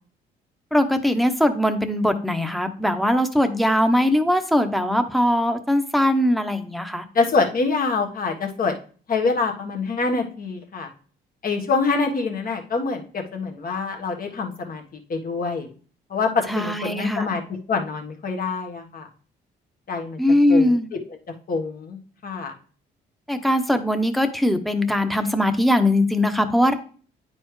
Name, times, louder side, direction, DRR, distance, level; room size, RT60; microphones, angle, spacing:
voice 1, 0.7-7.0 16.5-17.3 20.2-20.9 23.3-26.7, left 1 dB, ahead, 7 dB, 1.0 m, -20 dB
voice 2, 7.1-8.7 9.1-10.9 11.4-14.8 15.1-15.7 16.1-16.3 16.5-17.4 17.7-19.1 19.9-20.2 20.5-20.7 21.5-22.5, left 4 dB, 50° left, 3 dB, 1.4 m, -25 dB
9.3 x 4.3 x 3.2 m, 0.42 s
supercardioid pair, 70°, 19 cm